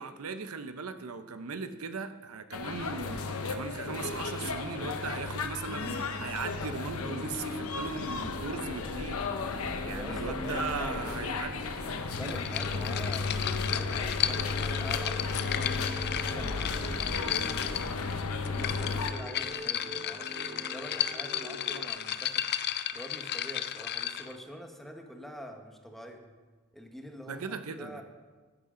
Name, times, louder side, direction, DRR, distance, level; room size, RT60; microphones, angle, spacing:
voice 1, 0.0-9.2 9.8-11.7 27.3-28.0, right 5 dB, 85° right, 10 dB, 0.7 m, -38 dB
sound 1, 2.5-19.1, left 4 dB, 85° left, 1.0 m, -34 dB
sound 2, 7.0-21.9, left 1 dB, 35° right, 2.1 m, -45 dB
voice 2, 9.9-11.2 12.1-17.8 18.5-22.5 22.9-26.2 26.7-28.0, equal, ahead, 3 dB, 1.1 m, -45 dB
sound 3, 12.1-24.4, left 10 dB, 50° left, 0.5 m, -34 dB
14.0 x 10.0 x 3.8 m, 1.3 s
head